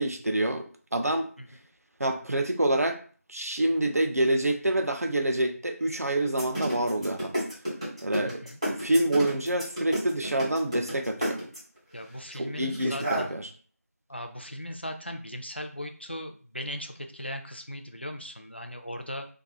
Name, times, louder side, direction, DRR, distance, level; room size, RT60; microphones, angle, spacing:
voice 1, 0.0-1.3 2.0-3.0 3.3-7.3 8.0-11.4 12.3-13.5, right 1 dB, 70° right, 6 dB, 0.5 m, -27 dB
sound 1, 6.2-11.8 12.6-13.2, equal, 20° right, 1.0 m, -30 dB
voice 2, 8.2-8.6 11.9-13.4 14.1-19.3, equal, 45° left, 5 dB, 0.3 m, -38 dB
2.7 x 2.3 x 2.3 m, 0.41 s
figure-of-eight pair, 175°, 9 cm